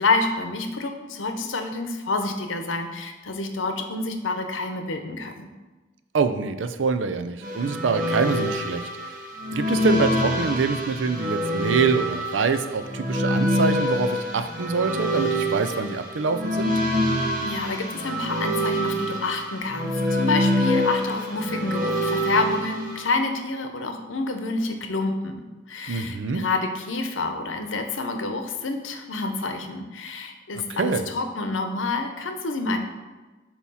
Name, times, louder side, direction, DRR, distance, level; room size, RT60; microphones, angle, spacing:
voice 1, 0.0-5.5 17.4-32.8, left 3 dB, 90° left, 6 dB, 0.8 m, -28 dB
voice 2, 6.1-8.9 9.5-16.7 25.9-26.4 30.5-31.1, right 5 dB, 80° right, 9 dB, 0.5 m, -25 dB
sound 1, 7.4-23.1, equal, 45° right, 1.0 m, -26 dB
8.4 x 3.0 x 5.6 m, 1.2 s
head